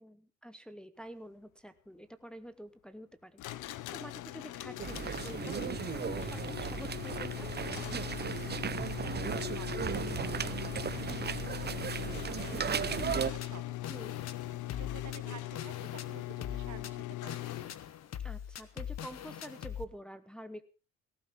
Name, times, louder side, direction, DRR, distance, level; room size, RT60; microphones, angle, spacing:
voice 1, 0.0-7.5 13.9-14.3 18.2-20.6, equal, 5° left, 9 dB, 1.0 m, -48 dB
sound 1, 3.4-18.1, left 16 dB, 85° left, 0.8 m, -40 dB
sound 2, 4.8-13.3, right 7 dB, 35° right, 0.7 m, -36 dB
voice 2, 7.9-13.9 14.5-17.5, right 9 dB, 65° right, 10 dB, 1.8 m, -52 dB
sound 3, 13.0-19.8, left 9 dB, 60° left, 1.1 m, -43 dB
17.5 x 15.0 x 3.7 m, 0.33 s
cardioid pair, 90°, 30 cm